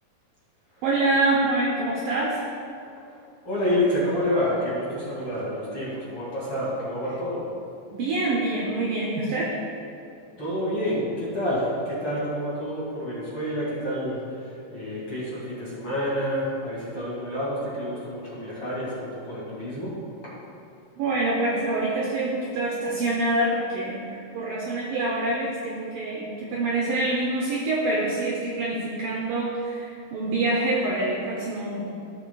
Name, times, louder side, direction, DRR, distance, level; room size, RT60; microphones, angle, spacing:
voice 1, 0.8-2.4 7.9-9.5 21.0-24.0 24.3-31.9, right 2 dB, 75° right, -3 dB, 2.0 m, -26 dB
voice 2, 3.4-7.5 10.4-20.0, equal, 40° left, -8 dB, 2.3 m, -28 dB
17.5 x 6.3 x 2.3 m, 2.6 s
omnidirectional pair, 4.8 m